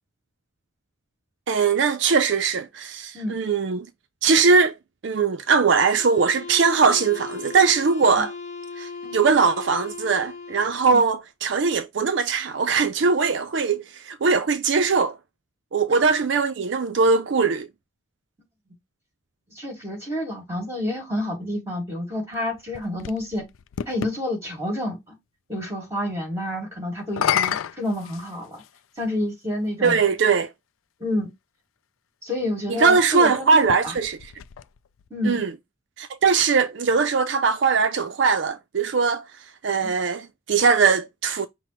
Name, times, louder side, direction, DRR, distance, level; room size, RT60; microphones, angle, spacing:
voice 1, 1.5-3.9 4.2-4.7 5.0-8.3 8.8-15.2 15.7-17.7 29.8-30.5 32.7-34.2 35.2-35.5 36.0-41.5, right 5 dB, 60° right, 0.4 m, -21 dB
sound 1, 5.8-10.8, left 4 dB, 30° left, 0.9 m, -37 dB
voice 2, 19.5-23.4 23.9-25.2 25.5-28.6 29.0-30.0 31.0-31.3 32.2-33.5 33.8-34.0 35.1-35.4 39.8-39.9, left 1 dB, 15° right, 2.5 m, -29 dB
sound 2, 22.3-24.2 27.0-28.8 29.7-29.8 33.5-35.1, left 9 dB, 85° left, 0.4 m, -29 dB
5.8 x 2.1 x 4.3 m
head